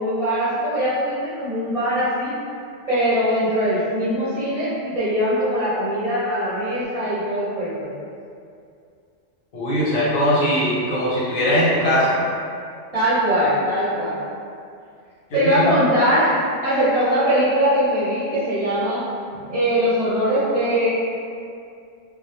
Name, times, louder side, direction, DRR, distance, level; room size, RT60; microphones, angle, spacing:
voice 1, 0.0-2.4 2.9-7.9 12.9-14.2 15.3-16.3 16.6-19.0 19.5-20.9, equal, 35° right, -13 dB, 0.6 m, -21 dB
voice 2, 9.5-12.2 15.3-15.7 19.4-19.5, equal, 85° left, -8 dB, 1.1 m, -20 dB
2.3 x 2.1 x 2.7 m, 2.4 s
omnidirectional pair, 1.3 m